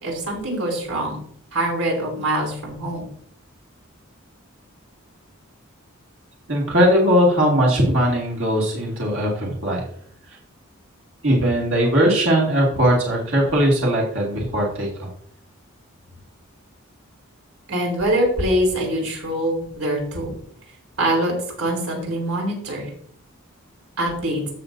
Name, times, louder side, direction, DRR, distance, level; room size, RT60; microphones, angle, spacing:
voice 1, 0.0-1.2 1.5-3.0 17.7-20.3 21.0-22.9 24.0-24.4, right 1 dB, 85° right, 0 dB, 3.9 m, -24 dB
voice 2, 6.5-9.8 11.2-15.1, equal, 65° right, -3 dB, 2.3 m, -19 dB
15.0 x 6.6 x 2.7 m, 0.65 s
head